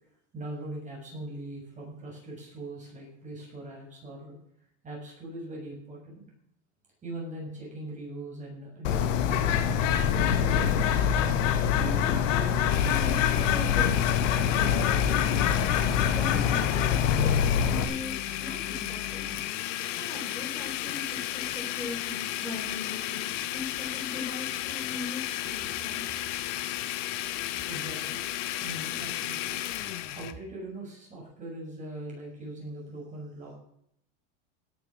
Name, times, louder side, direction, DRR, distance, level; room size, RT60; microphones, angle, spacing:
voice 1, 0.3-4.4 4.8-6.3 7.0-10.7 27.0-27.4 27.7-28.2 28.6-29.6 30.1-33.6, right 1 dB, 20° right, -3 dB, 6.9 m, -41 dB
Bird, 8.8-17.8, left 8 dB, 90° left, 2.0 m, -24 dB
voice 2, 11.7-26.1, left 3 dB, 5° left, -4 dB, 5.8 m, -40 dB
Domestic sounds home sounds, 12.7-30.3, left 13 dB, 75° left, 1.5 m, -34 dB
17.0 x 8.5 x 6.4 m, 0.72 s
supercardioid pair, 150°, 37 cm